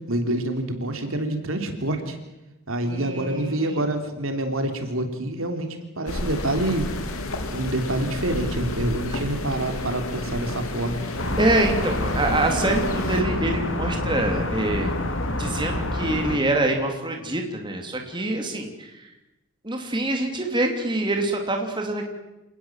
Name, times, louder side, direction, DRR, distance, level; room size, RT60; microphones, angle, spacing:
voice 1, 0.1-2.2 2.7-6.9 7.5-11.0, right 1 dB, 70° right, 6 dB, 3.3 m, -27 dB
voice 2, 2.8-3.9 11.4-14.9 15.3-19.1 19.6-22.1, right 2 dB, 20° right, 3 dB, 3.2 m, -25 dB
sound 1, 6.1-13.2, left 2 dB, 75° left, 2.9 m, -31 dB
sound 2, 11.2-16.4, left 1 dB, 60° left, 3.1 m, -27 dB
28.0 x 19.0 x 7.5 m, 0.99 s
head